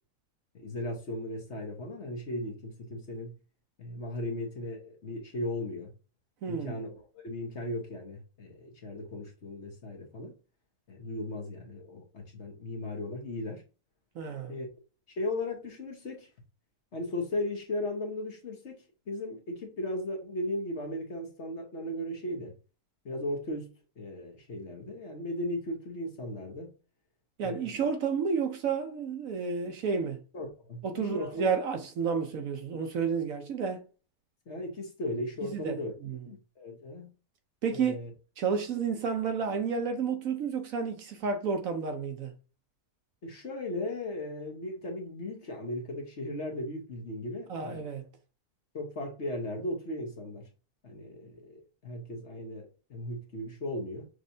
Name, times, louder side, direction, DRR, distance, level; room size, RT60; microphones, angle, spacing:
voice 1, 0.5-3.3 3.8-5.9 6.5-10.3 10.9-13.6 14.5-14.7 15.2-16.3 16.9-22.5 23.0-23.7 24.0-26.7 27.4-27.8 30.3-31.5 34.5-35.9 36.3-37.1 37.7-38.1 43.2-47.9 48.7-50.5 50.8-54.1, left 1 dB, 50° left, 1.3 m, -37 dB
voice 2, 6.4-6.8 14.2-14.6 27.4-30.2 30.8-33.8 35.4-36.2 37.6-38.0 38.4-42.3 47.5-48.1, right 6 dB, 65° right, 1.1 m, -31 dB
6.2 x 3.2 x 2.7 m
omnidirectional pair, 1.7 m